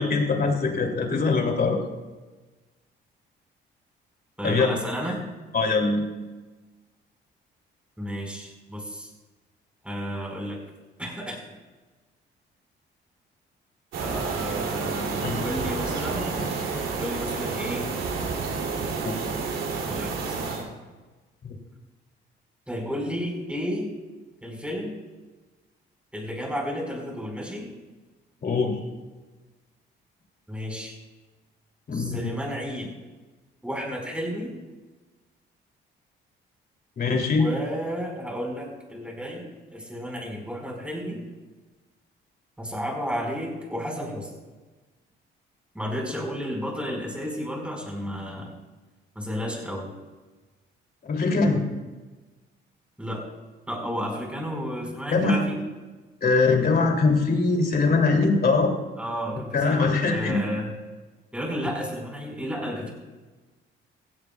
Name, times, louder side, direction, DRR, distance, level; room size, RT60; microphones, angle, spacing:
voice 1, 0.0-1.8 4.4-4.7 5.5-6.0 15.2-15.4 19.0-19.1 28.4-28.8 31.9-32.3 37.0-37.5 51.0-51.6 55.1-55.4 56.2-58.7 59.5-60.4, left 4 dB, 50° left, 1 dB, 3.0 m, -22 dB
voice 2, 4.4-5.2 8.0-9.1 9.8-10.6 11.0-11.4 13.9-16.6 17.0-17.9 19.8-20.7 22.7-23.9 24.4-25.0 26.1-27.7 30.5-31.0 31.9-32.9 33.6-34.5 37.3-41.2 42.6-44.3 45.7-48.5 49.1-49.9 53.0-53.2 53.7-55.6 59.0-60.7 61.3-62.9, equal, 5° right, -1 dB, 5.1 m, -32 dB
sound 1, 13.9-20.6, right 4 dB, 80° right, 3.0 m, -29 dB
16.5 x 16.5 x 2.4 m, 1.3 s
cardioid pair, 90°, 20 cm